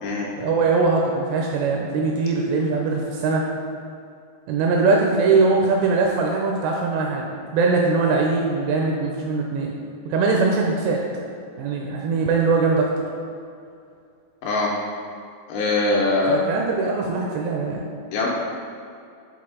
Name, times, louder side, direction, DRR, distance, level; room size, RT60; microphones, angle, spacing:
voice 1, 0.4-3.5 4.5-9.8 10.1-11.0 11.6-12.9 16.3-17.9, right 4 dB, 85° right, 0 dB, 2.5 m, -21 dB
voice 2, 14.4-14.7 15.5-16.4 18.1-18.3, left 3 dB, 80° left, -3 dB, 2.5 m, -22 dB
7.8 x 3.9 x 3.7 m, 2.4 s
omnidirectional pair, 5.3 m